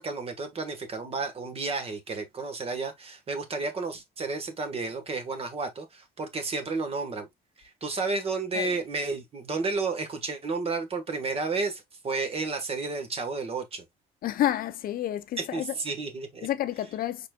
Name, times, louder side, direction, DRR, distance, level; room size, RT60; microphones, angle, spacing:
voice 1, 0.0-7.3 7.6-13.8 15.4-16.5, right 3 dB, 35° right, 1.4 m, -32 dB
voice 2, 14.2-15.7 16.4-17.3, left 12 dB, 60° left, 0.6 m, -29 dB
5.3 x 4.1 x 2.3 m
cardioid pair, 110°, 17 cm